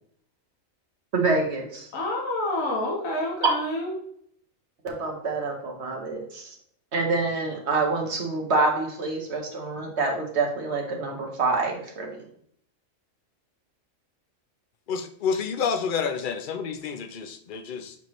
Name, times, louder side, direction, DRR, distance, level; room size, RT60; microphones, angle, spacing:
voice 1, 1.1-1.9 3.4-3.5 4.8-6.5 6.9-12.3, right 3 dB, 55° right, 1 dB, 1.5 m, -26 dB
voice 2, 1.9-3.9, left 1 dB, 70° left, -3 dB, 1.7 m, -28 dB
voice 3, 14.9-18.0, left 6 dB, 55° left, 8 dB, 0.6 m, -29 dB
7.1 x 4.5 x 3.1 m, 0.63 s
omnidirectional pair, 1.4 m